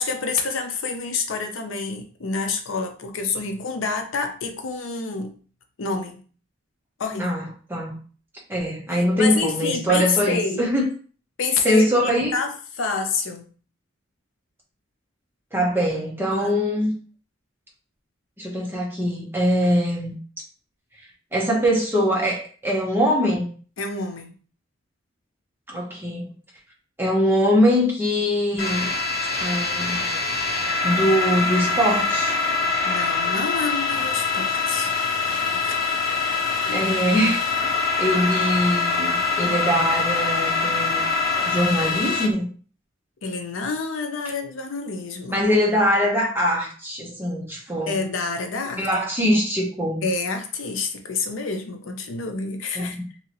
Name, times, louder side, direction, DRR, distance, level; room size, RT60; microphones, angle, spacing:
voice 1, 0.0-5.3 5.8-6.2 7.0-7.4 8.9-10.7 11.4-13.5 16.3-16.6 23.8-24.3 32.8-34.9 35.6-35.7 36.7-36.9 43.2-45.5 47.9-48.9 50.0-53.0, left 4 dB, 85° left, 0.6 m, -28 dB
voice 2, 8.5-10.9 11.6-12.3 15.5-16.9 18.4-20.2 21.3-23.5 25.7-26.3 27.0-28.9 29.4-30.0 30.8-32.4 35.3-35.4 36.7-37.7 38.0-41.0 41.4-42.5 45.3-47.9 48.8-50.0 52.8-52.9, equal, 10° right, 0.9 m, -22 dB
sound 1, 28.6-42.3, left 4 dB, 50° left, 0.8 m, -24 dB
2.8 x 2.8 x 2.8 m
head